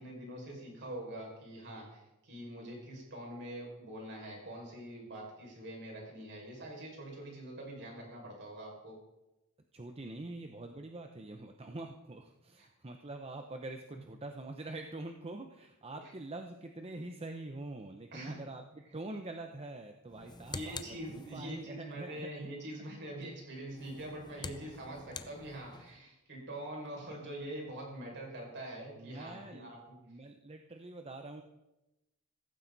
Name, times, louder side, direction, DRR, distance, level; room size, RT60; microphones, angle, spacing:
voice 1, 0.0-9.0 12.6-12.7 16.0-16.1 18.1-18.4 20.5-30.0, right 1 dB, 55° right, -1 dB, 5.8 m, -44 dB
voice 2, 9.7-18.6 18.9-22.5 29.0-29.7 30.1-31.4, right 2 dB, 25° right, 5 dB, 0.8 m, -45 dB
sound 1, 20.1-21.7 23.7-26.0, left 3 dB, 20° left, 0.7 m, -46 dB
16.5 x 15.0 x 4.1 m, 0.97 s
head